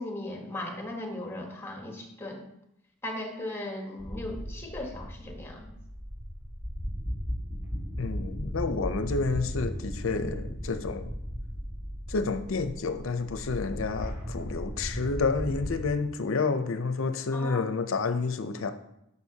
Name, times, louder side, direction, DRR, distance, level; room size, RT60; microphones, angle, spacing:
voice 1, 0.0-2.5 3.0-5.7 17.3-17.6, left 1 dB, 10° left, 2 dB, 1.2 m, -37 dB
sound 1, 4.0-15.9, equal, 10° right, 1.8 m, -36 dB
voice 2, 8.0-11.1 12.1-18.7, left 4 dB, 70° left, 10 dB, 0.6 m, -29 dB
10.5 x 5.3 x 2.8 m, 0.82 s
head